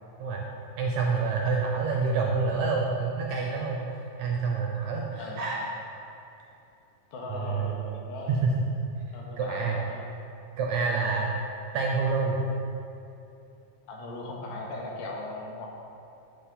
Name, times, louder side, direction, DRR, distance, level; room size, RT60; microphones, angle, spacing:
voice 1, 0.8-5.7 7.3-7.7 8.3-8.6 9.0-9.1 9.4-9.8 10.6-11.3 11.7-12.4, right 4 dB, 75° right, -1 dB, 1.8 m, -27 dB
voice 2, 7.1-8.4 9.1-10.1 13.9-15.7, left 2 dB, 85° left, -1 dB, 2.8 m, -38 dB
7.6 x 7.0 x 3.9 m, 2.8 s
omnidirectional pair, 3.9 m